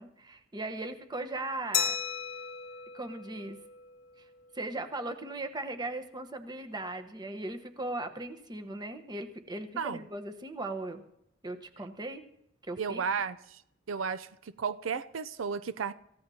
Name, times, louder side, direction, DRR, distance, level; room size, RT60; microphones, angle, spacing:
voice 1, 0.0-2.0 2.9-3.6 4.2-4.3 4.5-11.0 11.4-12.2 12.6-13.0, right 2 dB, 20° right, 1.1 m, -38 dB
Glass, 1.7-4.2, left 7 dB, 85° left, 0.8 m, -35 dB
voice 2, 12.8-13.6 13.9-14.3 14.6-15.9, right 6 dB, 85° right, 0.5 m, -33 dB
26.5 x 15.0 x 2.8 m
head